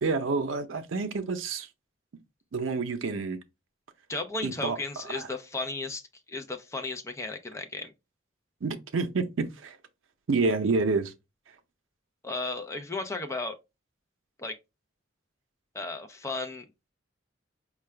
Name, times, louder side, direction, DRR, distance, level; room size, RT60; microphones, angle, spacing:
voice 1, 0.0-1.7 2.5-3.4 4.4-4.8 5.1-5.3 8.6-9.8 10.3-11.1, right 4 dB, 90° right, 0.6 m, -28 dB
voice 2, 4.1-6.0 6.3-7.9 12.2-13.6 14.4-14.6 15.7-16.7, left 3 dB, 15° left, 0.5 m, -34 dB
4.6 x 2.3 x 3.2 m
head